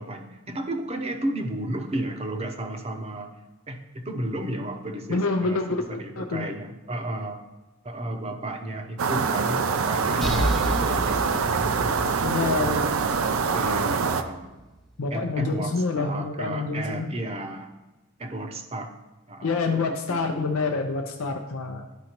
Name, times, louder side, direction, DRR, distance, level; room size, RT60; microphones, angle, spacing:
voice 1, 0.0-3.3 3.7-7.4 7.8-13.2 13.5-14.5 15.1-17.7 18.2-18.9 19.3-19.6 19.9-20.5, right 1 dB, 30° right, 5 dB, 0.7 m, -33 dB
voice 2, 5.1-6.5 12.2-12.8 15.0-17.1 19.4-21.9, left 3 dB, 85° left, 3 dB, 0.6 m, -27 dB
sound 1, 9.0-14.2, right 5 dB, 80° right, 0.5 m, -24 dB
sound 2, 10.2-13.9, equal, ahead, 0.4 m, -31 dB
11.5 x 5.1 x 2.9 m, 1.1 s
head